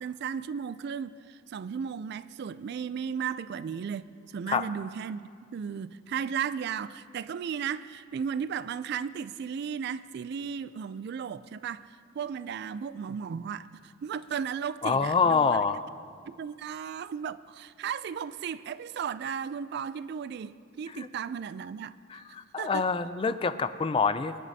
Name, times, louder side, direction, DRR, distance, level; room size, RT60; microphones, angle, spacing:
voice 1, 0.0-5.2 5.5-11.9 12.2-15.6 16.3-22.2 22.6-22.9, right 7 dB, 55° right, 0.3 m, -35 dB
voice 2, 14.8-15.9 20.9-21.1 22.1-24.4, left 5 dB, 25° left, 0.3 m, -26 dB
23.0 x 10.5 x 2.7 m
head